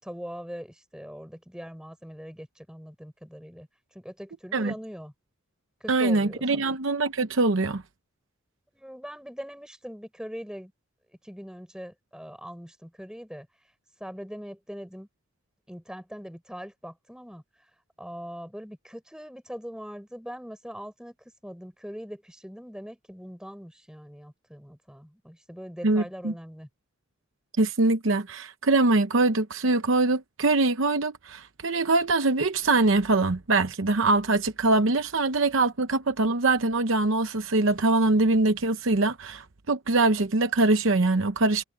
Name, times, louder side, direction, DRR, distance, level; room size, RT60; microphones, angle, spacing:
voice 1, 0.0-3.7 3.9-5.1 5.8-6.8 8.7-10.7 11.2-13.5 14.0-15.1 15.7-17.4 18.0-21.2 21.4-26.7, equal, 5° right, 5.6 m, -41 dB
voice 2, 5.9-7.8 25.8-26.3 27.6-41.6, right 2 dB, 70° right, 0.8 m, -23 dB
head